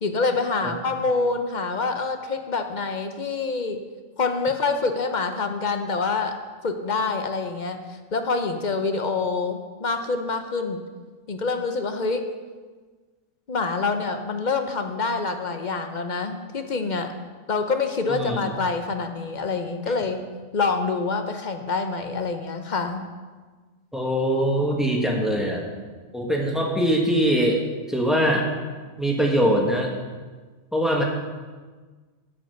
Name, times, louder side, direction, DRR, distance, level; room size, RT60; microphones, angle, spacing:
voice 1, 0.0-3.8 4.2-6.3 6.6-7.8 8.1-10.8 11.3-12.2 13.5-17.1 17.5-20.2 20.5-23.0, left 4 dB, 40° left, 7 dB, 0.7 m, -26 dB
voice 2, 18.1-18.5 23.9-25.7 26.1-27.6 27.9-28.5 29.0-29.9 30.7-31.0, equal, ahead, -1 dB, 1.3 m, -22 dB
9.7 x 5.3 x 7.9 m, 1.4 s
omnidirectional pair, 1.4 m